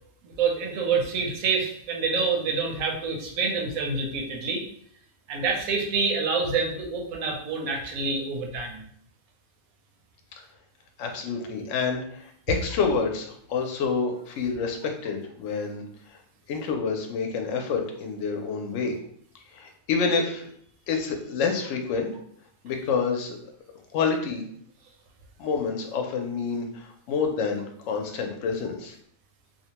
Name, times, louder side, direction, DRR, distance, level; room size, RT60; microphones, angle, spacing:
voice 1, 0.2-4.6 5.3-8.8, right 4 dB, 85° right, 1 dB, 1.1 m, -27 dB
voice 2, 11.0-15.8 16.5-18.9 19.5-20.5 20.9-22.1 22.6-23.4 23.9-24.4 25.4-28.9, left 5 dB, 70° left, 3 dB, 0.8 m, -28 dB
2.7 x 2.1 x 2.8 m, 0.64 s
omnidirectional pair, 1.5 m